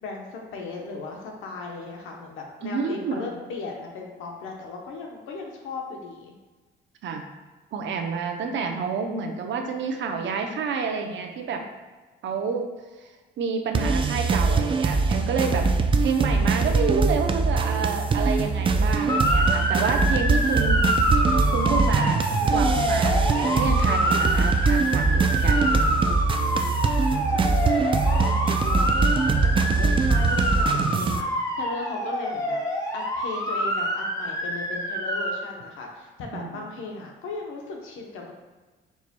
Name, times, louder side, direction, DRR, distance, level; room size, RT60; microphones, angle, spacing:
voice 1, 0.0-6.3 27.3-32.6 32.9-38.3, left 3 dB, 90° left, 0 dB, 0.8 m, -37 dB
voice 2, 2.6-3.4 7.0-7.3 7.7-11.6 12.2-12.7 13.0-15.7 16.0-20.8 21.5-25.7 36.3-36.5, right 5 dB, 70° right, 3 dB, 0.6 m, -29 dB
sound 1, 13.7-31.2, right 4 dB, 25° right, 0.3 m, -22 dB
Motor vehicle (road) / Siren, 19.1-35.3, equal, 15° left, 1.0 m, -26 dB
4.7 x 4.1 x 2.2 m, 1.3 s
cardioid pair, 90°, 20 cm